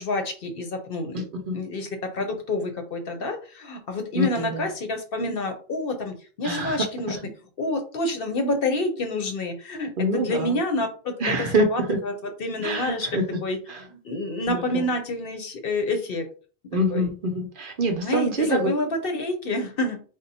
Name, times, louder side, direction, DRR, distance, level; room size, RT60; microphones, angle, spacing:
voice 1, 0.0-1.3 1.5-7.2 7.6-11.1 11.7-11.8 12.4-13.1 13.4-13.6 14.0-16.3 16.9-17.1 18.0-20.0, left 2 dB, 60° left, 5 dB, 0.8 m, -28 dB
voice 2, 1.1-1.6 4.1-4.7 6.4-6.8 7.1-7.3 10.0-10.6 11.2-12.0 12.6-13.2 13.7-13.9 14.5-14.9 16.7-18.7, right 1 dB, 55° right, 4 dB, 0.7 m, -26 dB
3.7 x 2.1 x 4.0 m, 0.39 s
omnidirectional pair, 1.2 m